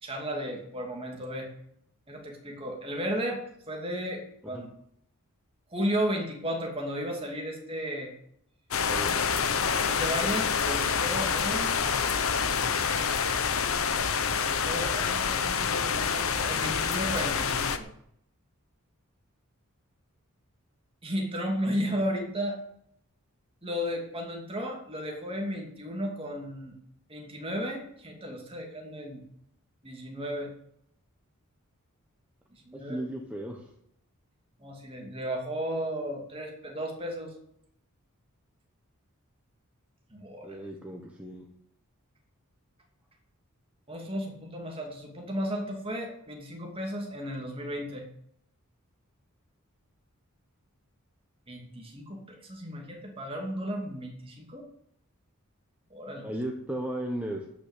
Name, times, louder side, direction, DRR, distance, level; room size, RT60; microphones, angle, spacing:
voice 1, 0.0-1.5 2.1-4.7 5.7-8.1 9.6-11.7 13.8-17.9 21.0-22.6 23.6-26.8 27.1-29.2 29.8-30.5 32.5-33.0 34.6-37.3 40.1-40.6 43.9-48.1 51.5-54.6 55.9-56.3, equal, 25° right, 1 dB, 2.7 m, -34 dB
sound 1, 8.7-17.8, left 6 dB, 70° left, 1.0 m, -27 dB
voice 2, 8.9-9.2 32.7-33.7 40.4-41.5 56.2-57.4, right 1 dB, 5° right, 0 dB, 1.3 m, -35 dB
13.0 x 6.3 x 8.1 m, 0.72 s
head